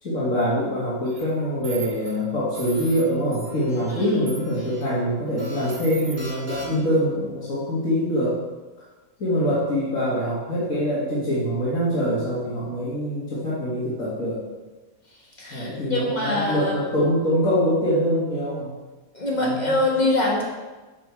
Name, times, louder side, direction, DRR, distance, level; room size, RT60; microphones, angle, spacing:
voice 1, 0.0-8.4 9.2-14.4 15.5-18.7 19.4-19.8, equal, 65° left, -10 dB, 2.5 m, -24 dB
sound 1, 1.0-1.2 1.6-2.1 2.5-3.0 3.3-3.9 4.3-4.8 5.4-6.9, right 2 dB, 80° right, 3.3 m, -39 dB
voice 2, 15.4-16.7 19.1-20.4, left 2 dB, 30° left, -3 dB, 2.1 m, -24 dB
9.2 x 5.8 x 4.7 m, 1.2 s
omnidirectional pair, 1.5 m